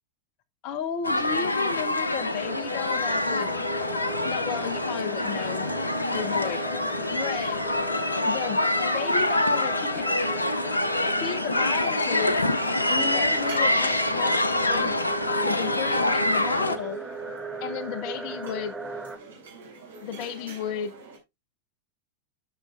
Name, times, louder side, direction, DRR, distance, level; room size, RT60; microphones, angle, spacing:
voice 1, 0.6-3.5 4.2-5.7 6.1-6.6 7.1-7.6 8.2-8.6 8.9-10.1 11.2-12.4 12.9-14.3 14.6-15.0 15.4-17.0 17.6-18.8 20.0-20.9, left 8 dB, 45° left, 0.9 m, -33 dB
sound 1, 1.0-16.8, left 1 dB, 80° left, 0.8 m, -26 dB
sound 2, 2.1-19.2, right 2 dB, 10° right, 0.8 m, -38 dB
sound 3, 13.4-21.2, right 3 dB, 70° right, 3.8 m, -45 dB
12.5 x 6.7 x 2.4 m
figure-of-eight pair, 90°, 0 cm